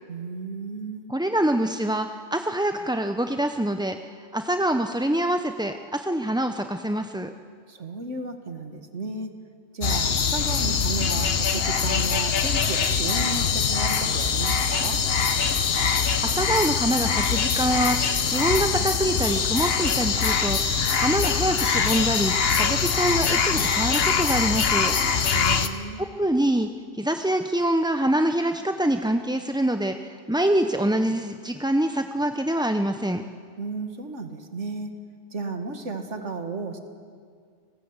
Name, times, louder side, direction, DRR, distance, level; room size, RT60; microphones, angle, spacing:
voice 1, 0.1-1.1 7.7-9.3 9.7-15.0 25.3-26.1 33.6-34.9 35.3-36.8, right 3 dB, 70° right, 6 dB, 2.3 m, -33 dB
voice 2, 1.1-4.0 4.3-7.3 16.2-18.0 18.2-24.9 26.0-26.7 26.9-33.2, right 1 dB, 5° right, 6 dB, 0.5 m, -25 dB
sound 1, 9.8-25.7, left 6 dB, 55° left, 1.3 m, -23 dB
30.0 x 20.0 x 8.1 m, 2.1 s
omnidirectional pair, 1.3 m